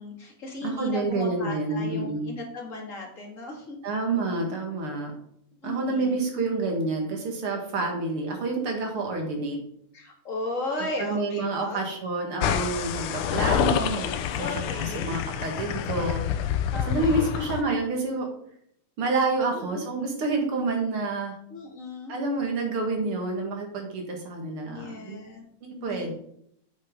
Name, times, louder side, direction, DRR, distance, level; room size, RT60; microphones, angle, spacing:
voice 1, 0.0-3.8 5.6-6.3 9.9-11.9 14.4-15.2 16.7-17.5 19.5-19.9 21.5-22.1 24.7-25.5 25.7-26.1, left 2 dB, 35° left, 0 dB, 2.3 m, -36 dB
voice 2, 0.6-2.3 3.8-5.1 5.6-9.6 10.8-14.4 14.7-16.2 16.9-18.3 19.0-21.3 22.1-25.2 25.6-26.1, right 3 dB, 80° right, 2 dB, 2.8 m, -28 dB
sound 1, 12.4-17.6, left 9 dB, 85° left, 1.6 m, -27 dB
8.2 x 5.7 x 5.2 m, 0.70 s
omnidirectional pair, 2.4 m